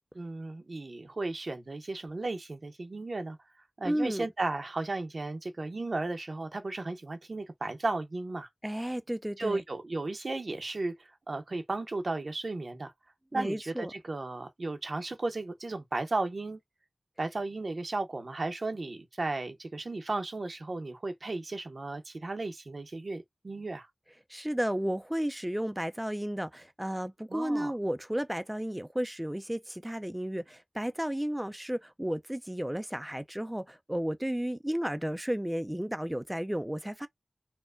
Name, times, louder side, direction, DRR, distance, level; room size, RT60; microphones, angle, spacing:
voice 1, 0.1-3.4 3.8-8.5 9.4-12.9 13.3-16.6 17.2-23.9 27.3-27.7, right 2 dB, 65° right, 0.8 m, -35 dB
voice 2, 3.8-4.3 8.6-9.6 13.3-13.9 24.3-37.1, equal, 10° right, 0.4 m, -33 dB
4.3 x 2.2 x 2.5 m
cardioid pair, 40°, 0 cm